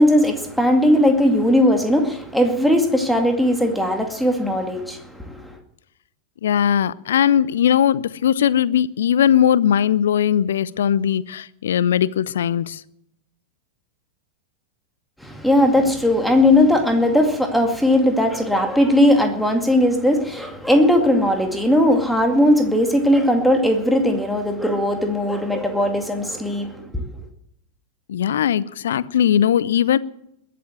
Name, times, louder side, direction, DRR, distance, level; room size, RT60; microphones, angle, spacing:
voice 1, 0.0-5.5 15.2-27.0, left 1 dB, ahead, 2.3 m, -18 dB
voice 2, 6.4-12.8 28.1-30.0, left 9 dB, 60° left, 0.6 m, -19 dB
21.5 x 7.7 x 7.8 m
figure-of-eight pair, 90°, 0 cm